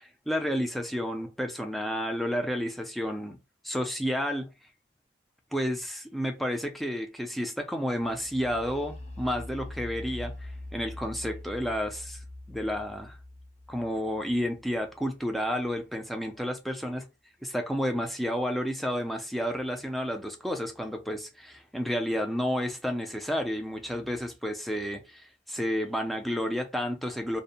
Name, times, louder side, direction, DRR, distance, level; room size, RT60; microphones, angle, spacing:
voice 1, 0.0-3.4 3.6-4.5 5.5-12.2 12.5-13.2 13.7-17.0 17.4-27.4, equal, ahead, 0.4 m, -31 dB
sound 1, 8.0-15.7, left 1 dB, 40° left, 0.6 m, -43 dB
2.6 x 2.0 x 2.7 m
head